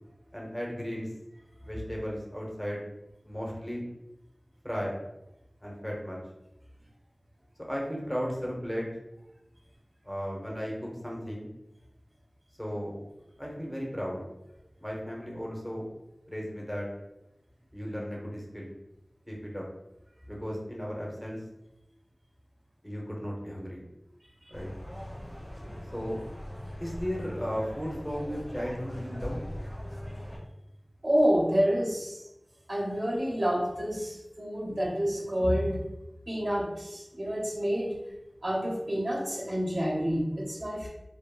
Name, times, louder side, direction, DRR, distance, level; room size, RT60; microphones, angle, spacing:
voice 1, 0.3-1.1 1.6-2.8 3.2-3.9 4.6-4.9 5.6-6.2 7.7-8.9 10.0-11.5 12.6-13.0 13.4-14.2 14.8-15.9 16.3-16.9 17.7-18.7 19.3-19.6 20.3-21.4 22.8-23.8 24.5-24.7 25.9-26.2 26.8-29.4, equal, 10° left, -3 dB, 0.8 m, -35 dB
sound 1, 24.5-30.4, equal, 35° left, 0.9 m, -40 dB
voice 2, 31.0-32.3 32.7-35.8 36.3-37.9 38.4-40.9, equal, 50° right, -4 dB, 0.9 m, -28 dB
3.4 x 2.1 x 2.3 m, 0.92 s
wide cardioid pair, 45°, 0 cm